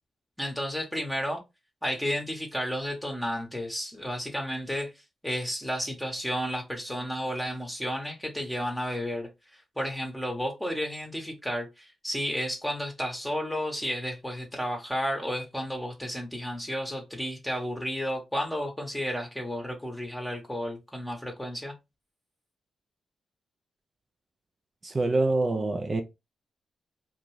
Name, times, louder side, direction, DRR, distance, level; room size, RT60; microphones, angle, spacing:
voice 1, 0.4-1.4 1.8-4.9 5.2-21.7, equal, 5° left, 0.9 m, -32 dB
voice 2, 24.8-26.0, right 2 dB, 40° right, 0.4 m, -25 dB
2.5 x 2.2 x 3.1 m
supercardioid pair, 45°, 0 cm